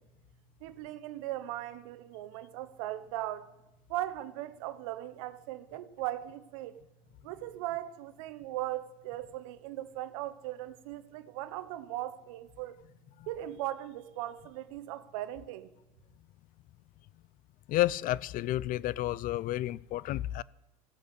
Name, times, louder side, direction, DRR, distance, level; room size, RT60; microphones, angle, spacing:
voice 1, 0.6-3.5 3.9-6.8 7.2-12.8 13.3-15.7, right 14 dB, 80° right, 1.0 m, -38 dB
voice 2, 17.7-20.4, left 15 dB, 55° left, 0.4 m, -31 dB
15.0 x 8.2 x 8.2 m
hypercardioid pair, 80°, 17 cm